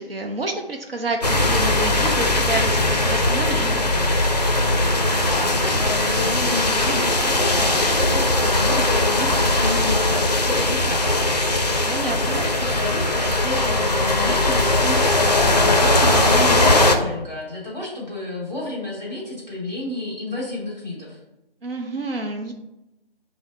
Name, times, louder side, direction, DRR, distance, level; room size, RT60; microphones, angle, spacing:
voice 1, 0.0-3.9 11.8-12.4 21.6-22.5, right 2 dB, 70° right, 3 dB, 0.6 m, -29 dB
sound 1, 1.2-17.0, left 2 dB, 45° left, 0.4 m, -19 dB
voice 2, 5.2-21.2, left 2 dB, 5° right, -8 dB, 1.3 m, -31 dB
6.1 x 2.0 x 3.8 m, 0.92 s
figure-of-eight pair, 155°, 30 cm